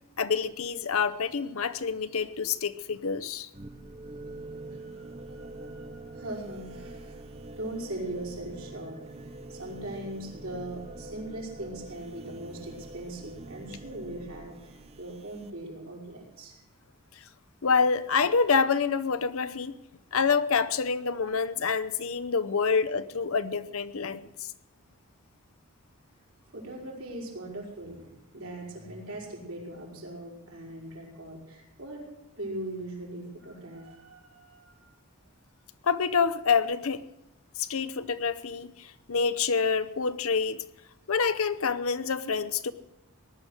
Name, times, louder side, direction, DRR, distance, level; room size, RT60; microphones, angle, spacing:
voice 1, 0.2-3.5 17.6-19.7 20.1-24.5 35.8-37.0 37.6-40.6 41.1-42.7, left 5 dB, 70° left, 0.7 m, -27 dB
sound 1, 3.5-15.5, right 2 dB, 25° right, 0.6 m, -44 dB
voice 2, 4.9-16.5 26.5-32.0 32.4-34.9, right 1 dB, 75° right, 5.1 m, -40 dB
19.0 x 11.5 x 6.5 m
head